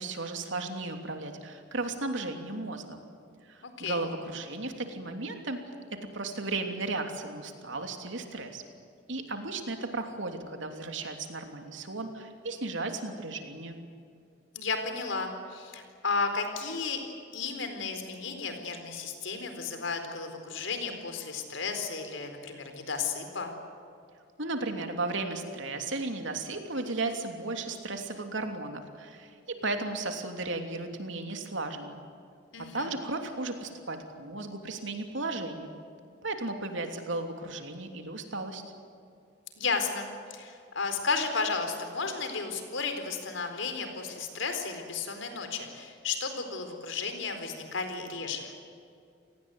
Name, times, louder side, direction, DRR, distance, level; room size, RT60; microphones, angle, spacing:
voice 1, 0.0-3.0 3.5-5.6 6.1-8.6 9.1-13.8 24.4-32.0 32.7-35.7 36.2-38.6, right 2 dB, 75° right, 5 dB, 3.0 m, -35 dB
voice 2, 3.6-4.0 14.5-17.0 17.3-23.5 32.5-32.9 39.6-48.5, left 4 dB, 80° left, 6 dB, 4.2 m, -33 dB
28.5 x 19.0 x 9.4 m, 2.4 s
head